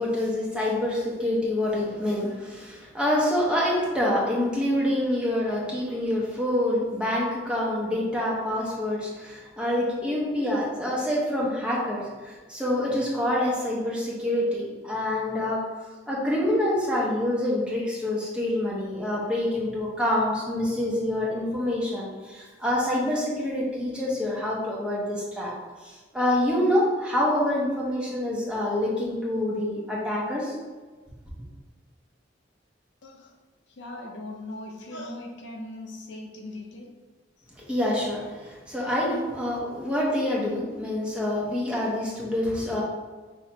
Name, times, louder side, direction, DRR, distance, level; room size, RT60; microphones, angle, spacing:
voice 1, 0.0-15.6 16.1-25.5 25.8-30.6 37.7-42.8, left 1 dB, 5° right, -5 dB, 0.9 m, -26 dB
voice 2, 33.0-33.3 33.7-36.9 37.4-37.5, left 1 dB, 70° left, 1 dB, 0.6 m, -39 dB
6.0 x 2.9 x 2.8 m, 1.3 s
head